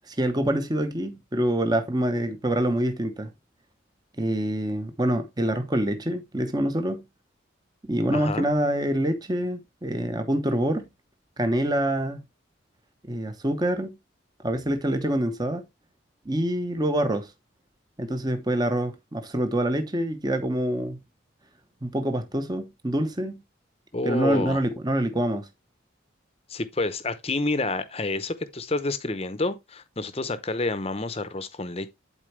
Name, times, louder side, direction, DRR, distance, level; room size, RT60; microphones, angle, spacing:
voice 1, 0.1-3.3 4.2-7.0 7.9-10.9 11.4-12.2 13.0-14.0 14.4-15.6 16.2-17.3 18.0-21.0 21.8-23.4 24.0-25.5, right 1 dB, 20° right, 0.9 m, -26 dB
voice 2, 8.1-8.5 23.9-24.6 26.5-31.9, left 2 dB, 30° left, 0.8 m, -29 dB
11.0 x 4.5 x 3.2 m
head